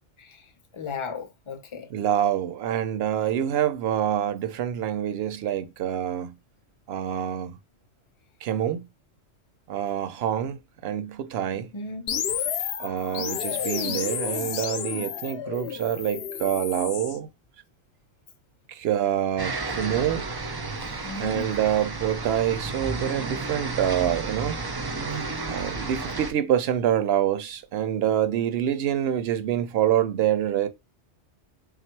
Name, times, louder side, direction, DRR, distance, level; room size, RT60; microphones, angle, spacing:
voice 1, 0.7-1.9 11.5-12.1 21.0-21.5, left 4 dB, 35° left, 0.6 m, -35 dB
voice 2, 1.9-6.4 6.9-7.6 8.4-8.9 9.7-11.7 12.8-17.3 18.7-20.3 21.2-24.6 25.5-30.7, right 10 dB, 70° right, 0.8 m, -26 dB
sound 1, 12.1-17.2, left 8 dB, 65° left, 0.8 m, -31 dB
sound 2, 19.4-26.3, right 3 dB, 35° right, 0.4 m, -32 dB
3.5 x 2.4 x 4.4 m
omnidirectional pair, 1.2 m